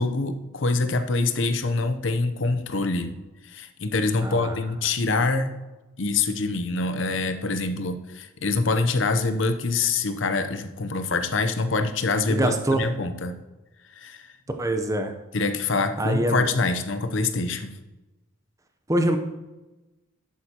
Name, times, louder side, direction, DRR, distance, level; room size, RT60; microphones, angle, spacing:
voice 1, 0.0-3.1 3.4-5.5 6.0-13.4 14.0-14.3 15.3-17.7, left 3 dB, 70° left, 9 dB, 0.7 m, -25 dB
voice 2, 4.2-4.6 12.3-12.9 14.6-15.1 16.0-16.5 18.9-19.2, right 1 dB, 15° right, 5 dB, 0.8 m, -24 dB
11.0 x 8.6 x 2.9 m, 1.1 s
head